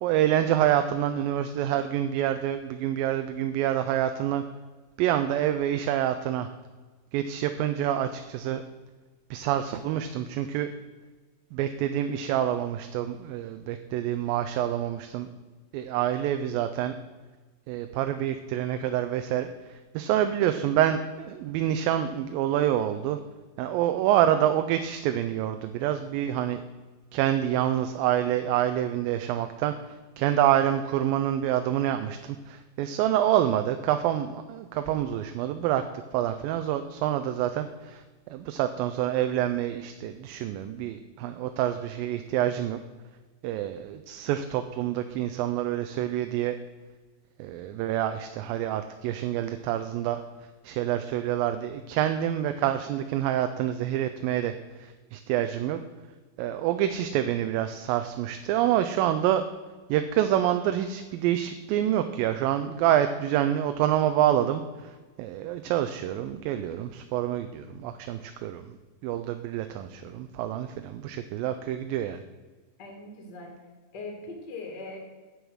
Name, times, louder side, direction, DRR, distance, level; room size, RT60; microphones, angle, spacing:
voice 1, 0.0-4.4 5.0-6.5 7.1-8.6 9.3-10.7 11.5-15.3 15.7-16.9 17.7-23.2 23.6-26.6 27.1-29.7 30.2-35.8 36.1-42.8 43.4-46.6 47.4-50.2 50.6-54.5 54.8-55.8 56.4-59.4 59.9-68.8 69.0-72.2, right 11 dB, 85° right, 8 dB, 2.3 m, -27 dB
voice 2, 72.8-73.6 73.9-75.0, left 3 dB, 40° left, 2 dB, 1.8 m, -40 dB
8.7 x 8.1 x 6.2 m, 1.3 s
omnidirectional pair, 4.1 m